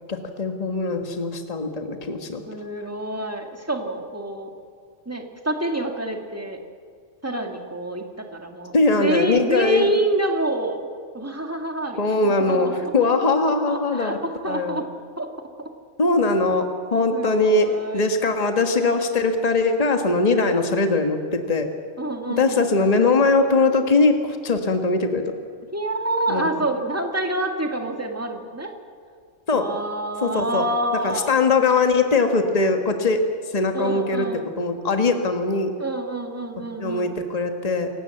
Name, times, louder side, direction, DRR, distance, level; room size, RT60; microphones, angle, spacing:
voice 1, 0.1-2.4 8.7-9.9 12.0-14.2 14.5-14.8 16.0-21.7 22.4-25.3 26.3-26.5 29.5-29.7 30.2-30.7 31.0-33.2 33.5-34.2 34.6-35.7 36.8-37.9, left 3 dB, 30° left, 5 dB, 1.6 m, -21 dB
voice 2, 2.4-4.5 5.1-6.6 7.2-10.9 11.1-12.9 13.4-14.9 15.2-15.3 15.6-15.7 17.1-18.0 22.0-23.0 25.7-28.7 29.5-31.4 33.7-34.5 35.8-37.1, right 1 dB, 10° right, 3 dB, 2.2 m, -27 dB
28.5 x 16.5 x 7.9 m, 2.1 s
omnidirectional pair, 1.3 m